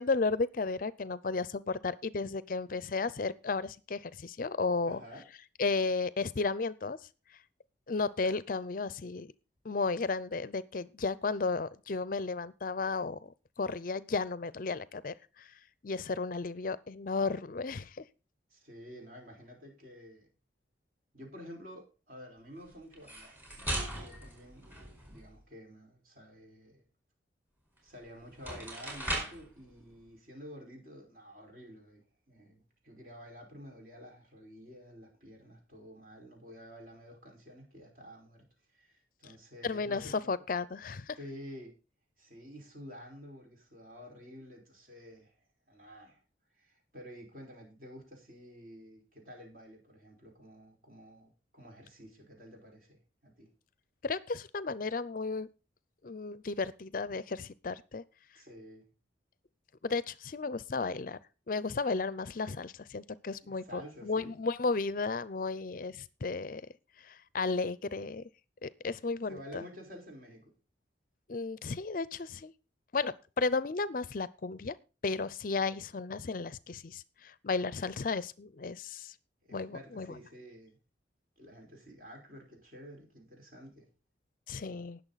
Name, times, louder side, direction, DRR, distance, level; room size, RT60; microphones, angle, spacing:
voice 1, 0.0-5.0 5.6-7.0 7.9-9.3 9.6-15.5 15.8-18.0 39.6-41.2 54.0-55.5 56.0-58.0 59.8-61.2 61.5-66.6 67.0-68.3 68.6-69.6 71.3-72.5 72.9-74.8 75.0-79.1 79.5-80.1 84.5-85.0, left 4 dB, 45° left, 0.5 m, -34 dB
voice 2, 4.8-5.2 18.5-20.3 21.1-26.8 27.8-40.1 41.2-41.7 42.2-45.3 45.7-46.2 46.5-53.5 58.3-58.9 63.4-64.3 69.3-70.5 79.4-80.8 81.4-83.9, equal, 45° right, 4.9 m, -50 dB
sound 1, 22.9-25.3 27.8-27.9 28.3-29.5, right 1 dB, 10° right, 4.7 m, -38 dB
19.0 x 6.8 x 4.0 m
head